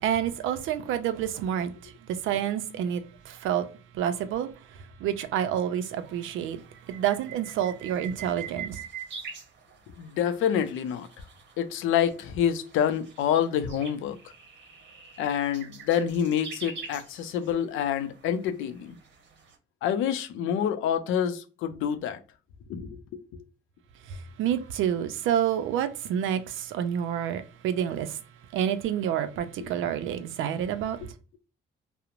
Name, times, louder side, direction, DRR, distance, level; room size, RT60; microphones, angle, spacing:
voice 1, 0.0-3.6 3.9-4.5 5.0-6.6 6.9-8.8 24.4-28.2 28.5-31.0, right 9 dB, 85° right, 0.4 m, -28 dB
sound 1, 5.9-19.6, right 6 dB, 65° right, 0.8 m, -45 dB
voice 2, 10.0-11.1 11.6-14.2 15.2-19.0 19.8-22.2 22.7-23.4 29.6-29.7, left 9 dB, 90° left, 0.4 m, -27 dB
2.9 x 2.0 x 2.4 m
cardioid pair, 90°, 20 cm